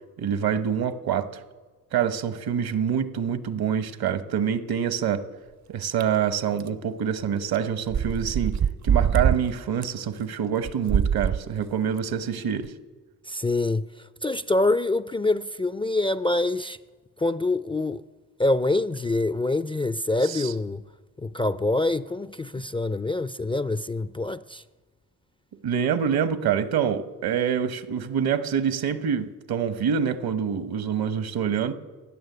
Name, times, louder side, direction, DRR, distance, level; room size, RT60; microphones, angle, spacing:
voice 1, 0.2-1.4 1.9-5.2 5.7-8.6 8.8-12.7 20.2-20.5 25.6-31.7, right 8 dB, 70° right, 1.1 m, -26 dB
sound 1, 6.0-6.1 6.6-6.7 7.5-7.6 7.9-9.4 9.8-9.9 10.6-11.4 12.0-12.1 12.6-12.7, right 8 dB, 45° right, 0.6 m, -23 dB
voice 2, 13.3-16.8 17.2-18.0 18.4-20.8 21.2-24.6, left 2 dB, 15° left, 0.4 m, -25 dB
15.5 x 6.5 x 9.7 m
supercardioid pair, 65°, 38 cm